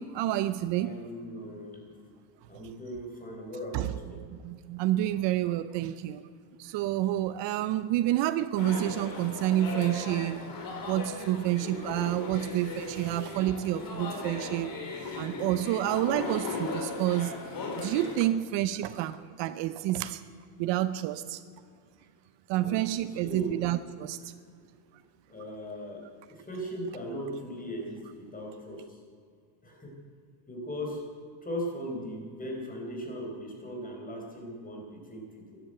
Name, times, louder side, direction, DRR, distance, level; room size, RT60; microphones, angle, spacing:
voice 1, 0.0-1.0 3.7-3.9 4.4-6.2 6.6-10.4 10.9-14.7 15.1-17.3 17.8-20.2 20.6-21.4 22.5-24.2, right 13 dB, 60° right, 13 dB, 0.8 m, -29 dB
voice 2, 0.7-2.0 2.5-4.2 22.5-22.9 23.2-23.7 25.3-29.0 29.6-30.0 30.5-31.0 31.4-35.6, equal, 15° left, 1 dB, 4.5 m, -38 dB
sound 1, 8.6-18.2, left 3 dB, 45° left, 4.0 m, -37 dB
14.0 x 11.0 x 9.1 m, 2.1 s
cardioid pair, 130°, 49 cm